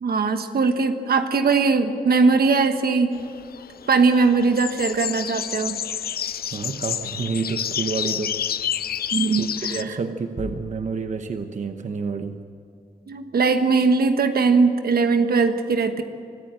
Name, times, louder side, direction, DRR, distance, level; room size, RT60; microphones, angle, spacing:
voice 1, 0.0-3.2 3.9-5.8 9.1-9.8 13.1-16.0, right 4 dB, 80° right, 7 dB, 1.4 m, -20 dB
sound 1, 3.1-9.8, left 9 dB, 80° left, 0.5 m, -29 dB
voice 2, 6.5-8.4 9.4-12.5, right 4 dB, 50° right, 7 dB, 0.9 m, -29 dB
sound 2, 10.4-11.3, left 1 dB, 5° left, 2.7 m, -38 dB
25.0 x 14.5 x 7.7 m, 2.5 s
wide cardioid pair, 135°, 16 cm